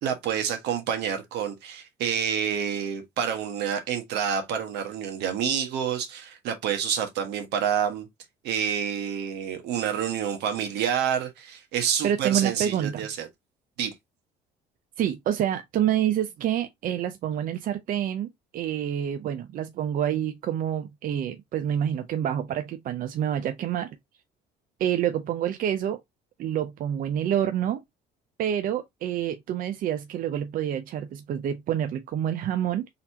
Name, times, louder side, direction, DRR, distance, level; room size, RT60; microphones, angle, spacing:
voice 1, 0.0-8.1 8.4-13.3 13.8-13.9, right 8 dB, 80° right, 1.1 m, -28 dB
voice 2, 12.0-13.1 15.0-24.0 24.8-26.0 26.4-27.8 28.4-32.9, right 10 dB, 55° right, 0.5 m, -27 dB
4.0 x 2.8 x 2.7 m
cardioid pair, 110°, 17 cm